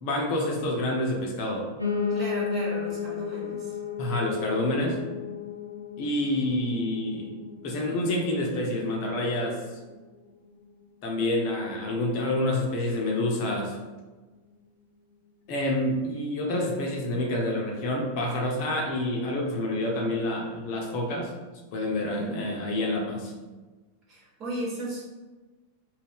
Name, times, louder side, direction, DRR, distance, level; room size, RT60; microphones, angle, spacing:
voice 1, 0.0-1.7 4.0-5.0 6.0-7.3 7.6-9.6 11.0-13.8 15.5-21.3 21.7-23.3, left 1 dB, 45° left, -1 dB, 0.6 m, -28 dB
Piano, 1.8-10.9 11.3-12.5 12.7-12.8 13.1-13.2 13.4-13.5 14.1-14.2, left 6 dB, 90° left, 0.4 m, -35 dB
voice 2, 2.1-3.8 22.1-22.4 24.1-25.0, right 2 dB, 35° right, -6 dB, 1.3 m, -35 dB
2.5 x 2.2 x 3.5 m, 1.3 s
figure-of-eight pair, 90°, 0 cm